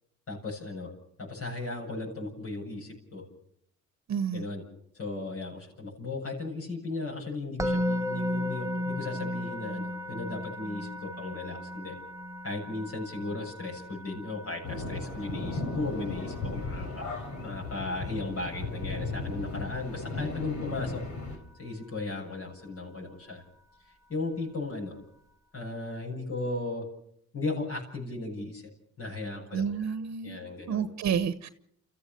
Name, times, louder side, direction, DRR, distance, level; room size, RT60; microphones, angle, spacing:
voice 1, 0.3-0.9 1.2-3.2 4.3-4.6 4.9-11.9 12.4-21.0 21.6-23.4 24.1-25.0 25.5-26.8 27.3-28.7 29.0-29.9 30.2-30.9, left 2 dB, 50° left, 7.8 m, -36 dB
voice 2, 4.1-4.4 29.5-30.4 30.7-31.5, right 7 dB, 60° right, 1.1 m, -30 dB
Musical instrument, 7.6-18.7, left 1 dB, 10° right, 0.9 m, -36 dB
sound 1, 14.6-21.4, left 3 dB, 75° left, 4.6 m, -36 dB
29.0 x 15.0 x 6.9 m
cardioid pair, 90°, 30 cm